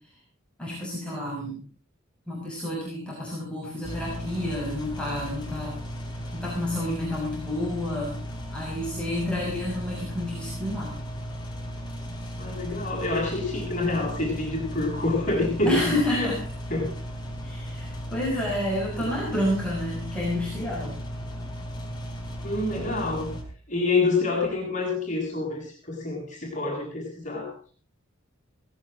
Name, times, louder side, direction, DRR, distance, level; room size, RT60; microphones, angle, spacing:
voice 1, 0.6-1.6 2.3-5.8 6.3-8.2 8.5-10.9 15.7-16.4 17.4-20.9, left 1 dB, 5° left, -6 dB, 6.1 m, -29 dB
sound 1, 3.8-23.4, equal, 20° left, 4.6 m, -36 dB
voice 2, 12.4-16.3 16.7-16.9 18.3-18.4 19.0-19.1 22.4-23.3 23.7-27.5, left 3 dB, 35° left, -1 dB, 6.8 m, -27 dB
18.5 x 17.0 x 3.9 m, 0.41 s
head